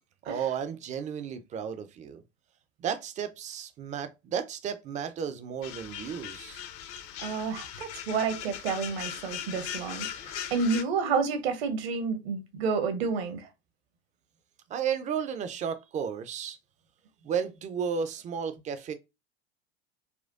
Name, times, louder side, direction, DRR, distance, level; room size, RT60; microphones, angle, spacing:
voice 1, 0.2-2.2 2.8-6.6 14.7-16.6 17.2-18.9, right 7 dB, 20° right, 0.4 m, -33 dB
sound 1, 5.6-10.8, left 10 dB, 45° left, 0.6 m, -39 dB
voice 2, 7.2-13.5, right 5 dB, 60° right, 1.0 m, -30 dB
4.2 x 2.2 x 2.4 m
figure-of-eight pair, 85°, 34 cm